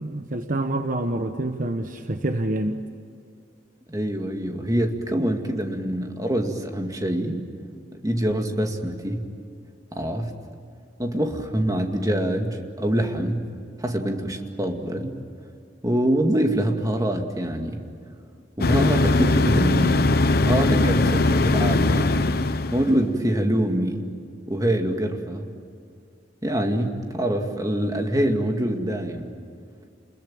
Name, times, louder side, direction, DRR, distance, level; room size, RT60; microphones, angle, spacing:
voice 1, 0.0-2.8, right 1 dB, 50° right, 7 dB, 1.2 m, -27 dB
voice 2, 3.9-7.4 7.9-9.3 9.9-10.4 11.0-13.5 13.8-15.3 15.8-17.8 18.6-22.1 22.7-24.1 24.5-25.5 26.4-29.3, right 1 dB, 20° right, 3 dB, 2.2 m, -25 dB
sound 1, 18.6-23.0, left 2 dB, 60° left, 1.0 m, -20 dB
29.0 x 21.5 x 8.8 m, 2.3 s
head